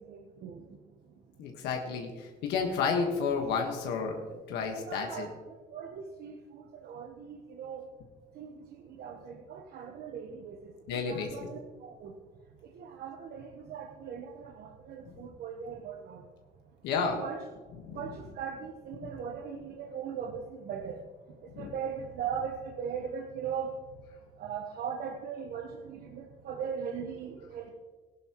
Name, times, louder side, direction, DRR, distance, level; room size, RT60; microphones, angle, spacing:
voice 1, 0.1-0.6 4.9-5.3 5.7-7.8 8.4-8.5 9.0-12.1 12.7-16.2 16.9-17.4 17.9-21.0 21.6-23.7 24.4-27.7, right 7 dB, 65° right, 2 dB, 1.1 m, -39 dB
voice 2, 1.4-5.3 10.9-11.3 15.1-15.2 16.8-17.1 17.8-18.1 19.0-19.1 21.5-21.7, left 5 dB, 85° left, 2 dB, 1.5 m, -32 dB
16.0 x 11.0 x 3.0 m, 1.4 s
cardioid pair, 110°, 17 cm